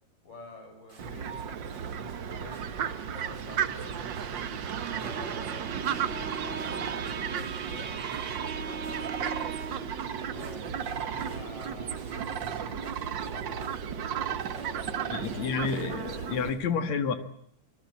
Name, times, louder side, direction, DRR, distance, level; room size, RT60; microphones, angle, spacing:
voice 1, 0.2-4.5 4.8-9.8 10.3-13.7 14.5-15.4, left 2 dB, 75° left, 4 dB, 8.8 m, -48 dB
sound 1, 0.9-2.1 2.5-3.0 3.3-3.9 4.1-4.7 5.0-6.3 6.6-7.8 8.1-8.5 8.8-9.3 9.6-10.0 10.3-12.5 12.8-14.0 14.4-14.9 15.2-16.6, right 3 dB, 30° right, 5.2 m, -57 dB
Fowl, 1.0-16.5, right 8 dB, 85° right, 1.0 m, -34 dB
Bowed string instrument, 4.6-9.9, right 5 dB, 45° right, 2.6 m, -40 dB
voice 2, 15.1-17.1, left 6 dB, 60° left, 9 dB, 2.8 m, -30 dB
25.5 x 20.0 x 8.6 m, 0.69 s
omnidirectional pair, 3.9 m